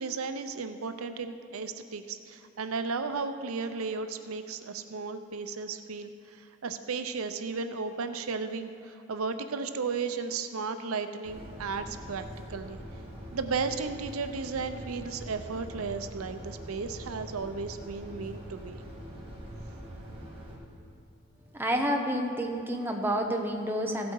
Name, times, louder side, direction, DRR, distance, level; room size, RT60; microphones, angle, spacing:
voice 1, 0.0-12.8 13.3-18.8, right 4 dB, 90° right, 9 dB, 0.6 m, -34 dB
sound 1, 11.2-20.6, equal, 25° right, 1.9 m, -43 dB
voice 2, 21.5-24.1, equal, 10° right, 3 dB, 0.8 m, -29 dB
15.5 x 8.3 x 4.6 m, 2.8 s
head